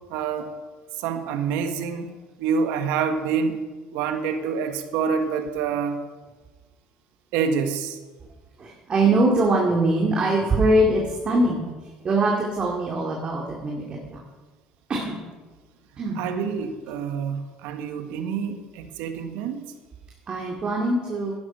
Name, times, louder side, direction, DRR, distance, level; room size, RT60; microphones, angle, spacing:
voice 1, 0.1-0.5 1.0-2.1 2.4-3.6 3.9-6.0 7.3-8.0 16.2-19.7, right 6 dB, 80° right, 1.3 m, -27 dB
voice 2, 8.6-11.7 12.0-14.2 14.9-15.2 16.0-16.2 20.3-21.3, right 2 dB, 35° right, 2.2 m, -22 dB
11.5 x 10.5 x 5.3 m
supercardioid pair, 95°, 3 cm